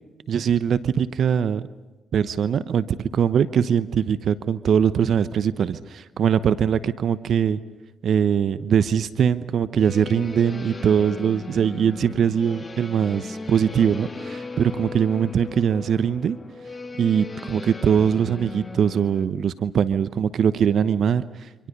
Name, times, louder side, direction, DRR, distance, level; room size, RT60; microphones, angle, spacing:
voice 1, 0.3-1.7 2.1-7.6 8.0-16.4 17.0-21.7, right 8 dB, 65° right, 14 dB, 0.9 m, -22 dB
sound 1, 9.8-19.3, left 3 dB, 35° left, 2.3 m, -37 dB
29.0 x 25.5 x 5.4 m, 1.2 s
hypercardioid pair, 50°, 0 cm